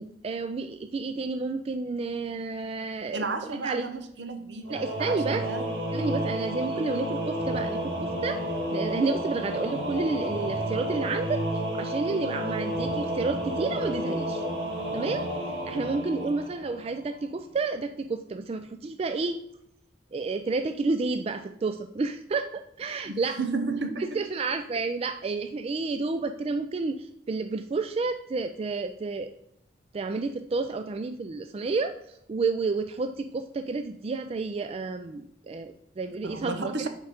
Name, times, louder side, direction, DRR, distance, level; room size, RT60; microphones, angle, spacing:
voice 1, 0.0-3.9 4.7-5.5 5.9-8.4 8.7-11.4 11.7-14.4 14.9-15.3 15.6-19.4 20.1-23.4 24.1-29.3 29.9-36.9, right 3 dB, 35° right, 8 dB, 0.3 m, -30 dB
voice 2, 3.1-5.7 6.5-6.8 16.2-16.3 23.1-24.2 36.1-36.9, right 3 dB, 70° right, 8 dB, 0.8 m, -33 dB
Singing / Musical instrument, 4.6-17.1, right 1 dB, 90° right, 1.8 m, -31 dB
6.8 x 4.5 x 5.0 m, 0.75 s
head